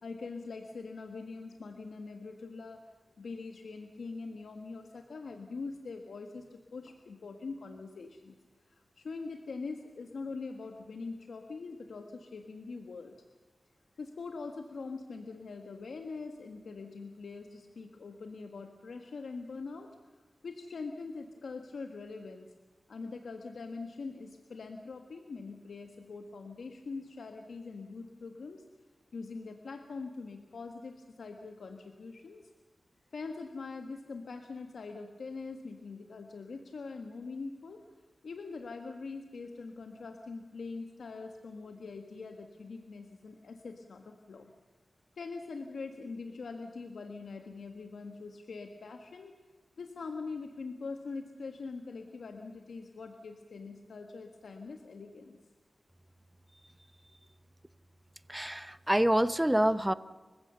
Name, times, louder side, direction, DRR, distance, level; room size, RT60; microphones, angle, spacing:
voice 1, 0.0-2.8 3.2-8.3 8.7-13.2 14.0-20.0 20.4-22.5 22.9-28.6 29.1-32.5 33.1-37.8 38.2-44.5 45.1-49.3 49.8-55.4, left 4 dB, 85° left, 5 dB, 1.5 m, -43 dB
voice 2, 58.3-59.9, right 1 dB, 10° right, 15 dB, 0.8 m, -26 dB
29.5 x 16.0 x 6.9 m, 1.3 s
wide cardioid pair, 95°, 0 cm